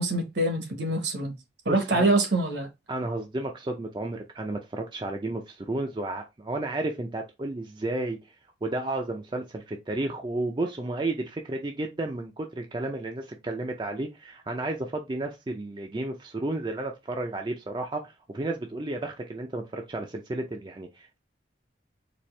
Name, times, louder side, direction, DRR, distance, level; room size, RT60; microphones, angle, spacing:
voice 1, 0.0-1.3 1.7-2.7, right 2 dB, 70° right, 1.0 m, -25 dB
voice 2, 1.7-2.1 2.9-8.2 8.6-21.2, right 2 dB, 25° right, 0.4 m, -32 dB
4.3 x 2.7 x 3.1 m
head